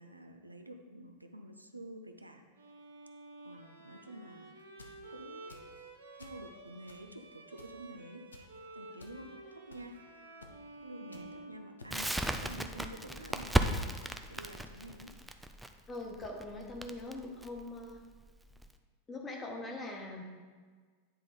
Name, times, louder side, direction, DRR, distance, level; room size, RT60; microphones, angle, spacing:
voice 1, 0.0-2.4 3.4-4.6 5.1-5.8 6.2-8.4 8.7-10.0 10.8-15.1, right 1 dB, 85° right, 5 dB, 0.5 m, -49 dB
Bowed string instrument, 2.6-12.3, right 2 dB, 70° right, 0.9 m, -52 dB
sound 1, 4.6-5.0 5.5-5.8 6.2-6.4 6.9-7.2 7.6-7.8 8.3-8.5 9.0-9.1 9.7-10.0 10.4-10.5 11.1-11.2 11.8-11.9 12.5-12.6 13.3-13.4 14.0-14.2, left 3 dB, 75° left, 0.7 m, -52 dB
Crackle, 11.9-18.7, right 1 dB, 5° right, 0.4 m, -35 dB
voice 2, 15.9-18.0 19.1-20.2, left 2 dB, 20° left, 1 dB, 1.2 m, -42 dB
9.4 x 3.8 x 4.3 m, 1.5 s
figure-of-eight pair, 90°, 0 cm